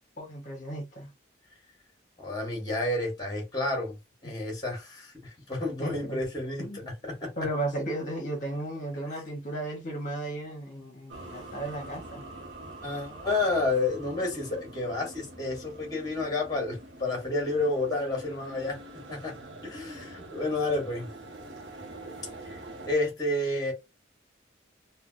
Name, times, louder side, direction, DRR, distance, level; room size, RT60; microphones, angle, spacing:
voice 1, 0.2-1.1 5.8-6.2 6.6-6.9 7.4-12.3, right 1 dB, 40° left, 0.8 m, -35 dB
voice 2, 2.2-3.9 4.2-6.6 7.0-7.3 12.8-18.8 19.1-19.3 19.6-21.1 22.4-22.6 22.9-23.7, left 2 dB, 20° left, 1.1 m, -30 dB
sound 1, 11.1-22.9, right 1 dB, 80° right, 0.9 m, -45 dB
3.3 x 2.2 x 2.4 m
head